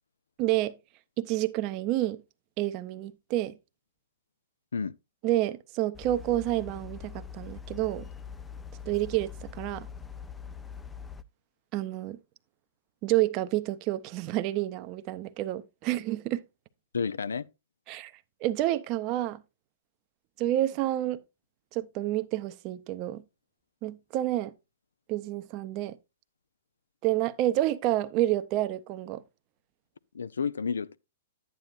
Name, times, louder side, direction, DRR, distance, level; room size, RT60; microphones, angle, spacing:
voice 1, 0.4-0.8 1.2-2.2 2.6-3.5 5.2-8.1 8.9-9.9 11.7-12.2 13.0-16.4 17.9-18.1 18.4-19.4 20.4-21.2 21.7-23.2 23.8-24.5 25.1-26.0 27.0-29.2, right 15 dB, 40° right, 0.6 m, -29 dB
sound 1, 5.9-11.2, left 7 dB, 10° left, 0.5 m, -43 dB
voice 2, 16.9-17.5 30.1-31.0, left 6 dB, 75° left, 0.5 m, -30 dB
11.5 x 9.0 x 2.5 m
hypercardioid pair, 110°, 0 cm